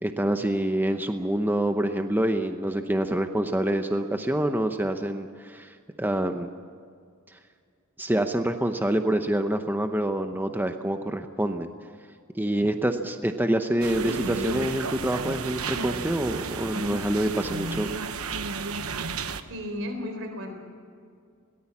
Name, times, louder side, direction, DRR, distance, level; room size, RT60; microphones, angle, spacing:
voice 1, 0.0-6.5 8.0-11.7 12.3-17.9, right 1 dB, 10° right, 7 dB, 0.8 m, -26 dB
sound 1, 13.8-19.4, right 4 dB, 90° right, 1.1 m, -32 dB
voice 2, 19.5-20.6, left 1 dB, 65° right, 5 dB, 4.1 m, -34 dB
22.0 x 18.5 x 7.3 m, 2.2 s
head